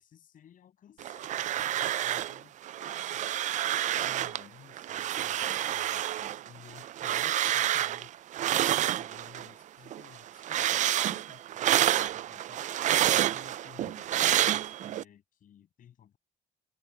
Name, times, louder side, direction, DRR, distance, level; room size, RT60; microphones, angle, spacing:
voice 1, 0.0-2.5 2.8-3.4 3.8-8.1 8.5-12.7 13.0-16.2, left 9 dB, 55° left, 6.9 m, -56 dB
sound 1, 1.0-2.4 2.6-4.4 4.8-9.5 9.9-15.0, right 12 dB, 45° right, 0.4 m, -29 dB
open air
cardioid pair, 110°, 17 cm